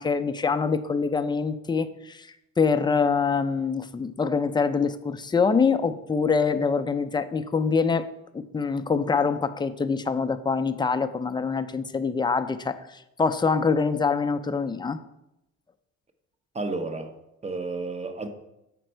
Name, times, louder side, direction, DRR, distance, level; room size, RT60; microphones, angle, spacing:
voice 1, 0.0-2.3 2.6-8.1 8.3-15.0, left 5 dB, 15° left, 0.4 m, -25 dB
voice 2, 16.5-17.1 17.4-18.3, right 3 dB, 20° right, 0.9 m, -31 dB
7.5 x 5.2 x 4.5 m
cardioid pair, 90°, 30 cm